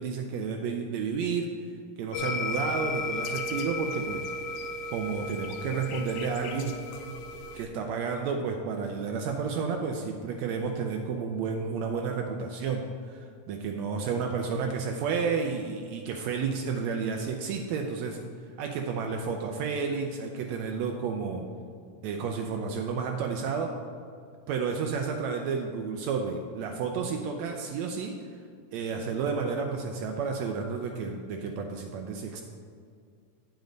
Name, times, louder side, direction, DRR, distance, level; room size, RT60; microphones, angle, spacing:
voice 1, 0.0-1.5 2.0-4.2 4.9-7.1 7.5-18.2 18.6-21.5 22.0-23.8 24.5-28.2 28.7-32.4, right 5 dB, 85° right, 3 dB, 1.5 m, -31 dB
sound 1, 2.1-7.6, left 2 dB, 80° left, 1.6 m, -35 dB
9.1 x 7.1 x 3.9 m, 2.2 s
omnidirectional pair, 3.7 m